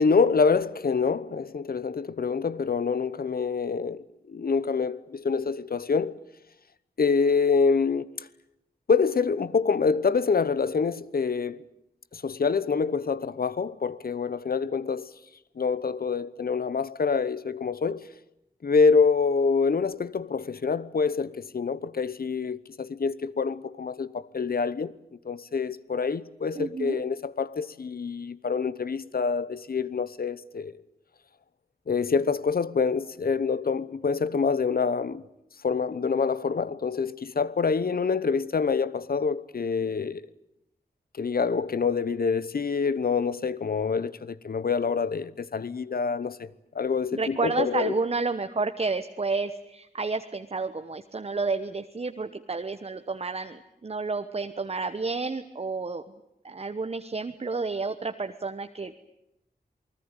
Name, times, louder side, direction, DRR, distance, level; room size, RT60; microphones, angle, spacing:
voice 1, 0.0-6.2 7.0-8.1 8.9-11.6 12.1-15.1 15.6-18.1 18.6-25.0 25.2-30.8 31.9-35.2 35.6-40.2 41.1-48.0, left 5 dB, 65° left, 1.0 m, -26 dB
voice 2, 26.5-27.0 47.1-56.0 56.4-59.0, right 4 dB, 40° right, 1.1 m, -30 dB
28.0 x 20.5 x 9.0 m
wide cardioid pair, 95°, 16 cm